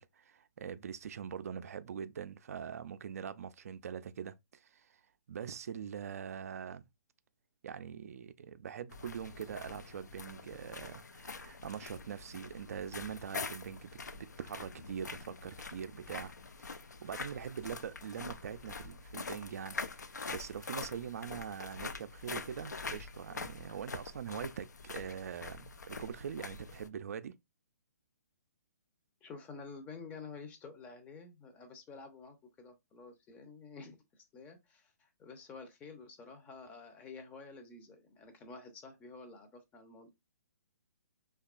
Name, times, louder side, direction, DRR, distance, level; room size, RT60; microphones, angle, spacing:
voice 1, 0.0-5.0 5.3-6.9 7.6-16.3 17.0-27.3, right 7 dB, 60° right, 0.3 m, -43 dB
sound 1, 8.9-26.9, left 4 dB, 85° left, 0.4 m, -45 dB
voice 2, 29.2-40.1, left 4 dB, 15° left, 0.5 m, -50 dB
2.8 x 2.3 x 2.4 m
figure-of-eight pair, 135°, 9 cm